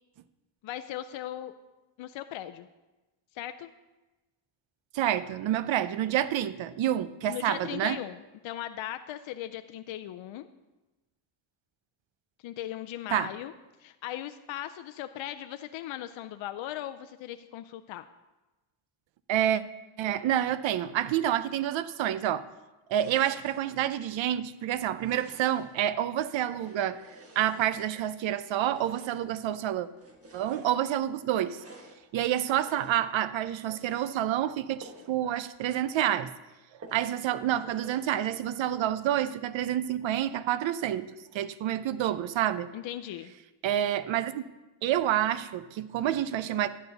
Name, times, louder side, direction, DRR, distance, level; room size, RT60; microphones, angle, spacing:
voice 1, 0.6-1.5 2.0-2.7 3.3-3.7 7.3-10.5 12.4-13.5 13.8-18.0 42.7-43.3, left 12 dB, 70° left, 9 dB, 0.5 m, -38 dB
voice 2, 4.9-8.0 13.1-13.3 19.3-19.6 20.0-22.5 22.9-27.0 27.4-29.9 30.3-31.6 32.1-36.3 36.9-42.7 43.6-44.4 44.8-46.7, right 11 dB, 70° right, 15 dB, 0.6 m, -28 dB
sound 1, 22.9-23.7 24.9-25.8 26.4-28.1 28.6-29.4 29.9-30.8 31.4-32.0 32.6-33.2 33.6-34.1 34.8-35.2 35.5-35.6 36.0-36.1 36.8-37.3 37.6-38.1, right 2 dB, 30° right, 1.3 m, -51 dB
11.0 x 9.2 x 3.9 m, 1.1 s
cardioid pair, 120°, 48 cm